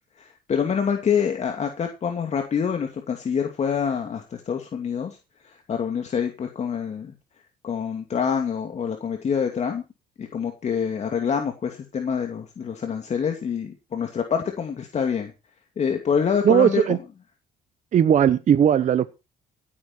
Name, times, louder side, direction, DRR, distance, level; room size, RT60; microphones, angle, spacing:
voice 1, 0.2-5.2 5.4-7.1 7.6-9.8 10.2-15.3 15.8-16.8, left 7 dB, 40° left, 4 dB, 2.5 m, -26 dB
voice 2, 16.4-17.0 17.9-19.1, right 9 dB, 45° right, 13 dB, 1.0 m, -18 dB
15.5 x 9.2 x 4.5 m, 0.29 s
cardioid pair, 110°, 17 cm